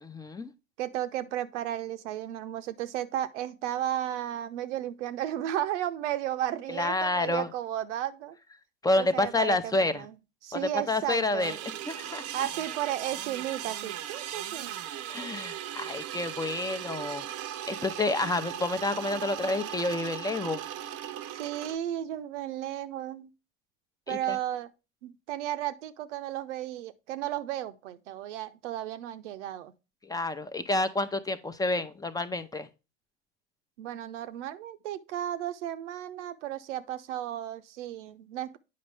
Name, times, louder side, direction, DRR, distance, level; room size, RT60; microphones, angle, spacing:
voice 1, 0.0-0.5 6.7-7.5 8.8-10.0 10.5-11.6 11.9-12.2 15.1-17.2 17.7-20.6 24.1-24.4 30.0-32.7, left 2 dB, 10° left, 0.7 m, -29 dB
voice 2, 0.8-8.4 9.0-10.1 10.4-11.6 12.3-14.7 21.3-23.3 24.1-24.7 25.0-29.7 33.8-38.6, right 12 dB, 80° right, 0.7 m, -34 dB
sound 1, 11.4-21.8, right 11 dB, 45° right, 0.7 m, -38 dB
8.5 x 5.3 x 3.3 m
hypercardioid pair, 90°, 35 cm